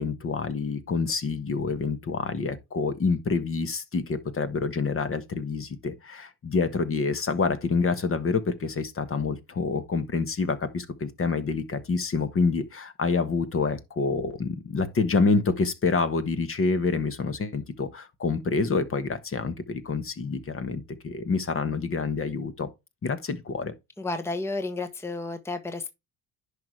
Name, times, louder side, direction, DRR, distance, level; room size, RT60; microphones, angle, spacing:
voice 1, 0.0-22.7 23.0-23.7, left 4 dB, 35° left, 1.4 m, -27 dB
voice 2, 24.0-25.9, left 3 dB, 5° left, 1.0 m, -31 dB
10.5 x 5.0 x 3.2 m
supercardioid pair, 70°, 38 cm